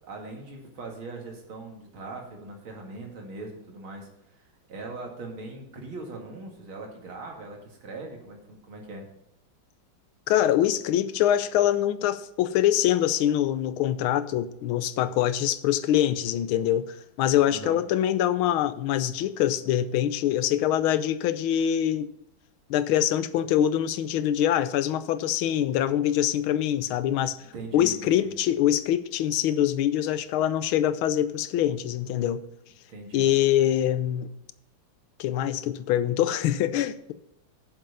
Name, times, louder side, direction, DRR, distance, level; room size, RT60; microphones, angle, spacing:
voice 1, 0.0-9.1 17.5-17.8 27.5-28.3 32.9-33.3, right 3 dB, 80° right, 2.9 m, -40 dB
voice 2, 10.3-22.1 22.7-27.4 27.7-32.4 33.1-34.3 35.2-37.1, left 11 dB, 85° left, 1.5 m, -24 dB
7.5 x 7.5 x 5.5 m
omnidirectional pair, 2.2 m